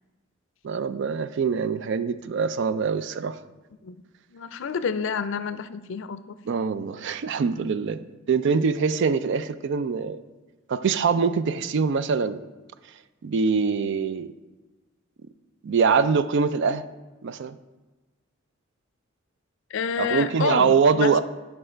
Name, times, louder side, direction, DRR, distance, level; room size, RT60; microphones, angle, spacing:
voice 1, 0.6-3.4 6.5-10.2 10.7-12.4 13.2-14.3 15.6-16.8 17.2-17.6 20.0-21.2, right 5 dB, 65° right, 0.4 m, -23 dB
voice 2, 4.3-6.3 19.7-21.1, left 6 dB, 65° left, 0.4 m, -29 dB
8.7 x 5.5 x 4.4 m
head